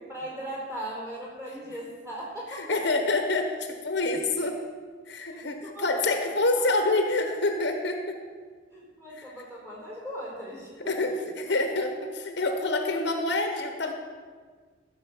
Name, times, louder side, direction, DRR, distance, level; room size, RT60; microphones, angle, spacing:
voice 1, 0.1-3.0 5.3-6.2 6.5-6.7 8.7-11.1, right 1 dB, 15° right, -5 dB, 4.5 m, -39 dB
voice 2, 2.5-4.6 5.1-8.2 10.9-13.9, left 2 dB, 60° left, 5 dB, 1.1 m, -27 dB
13.5 x 6.6 x 7.1 m, 1.5 s
head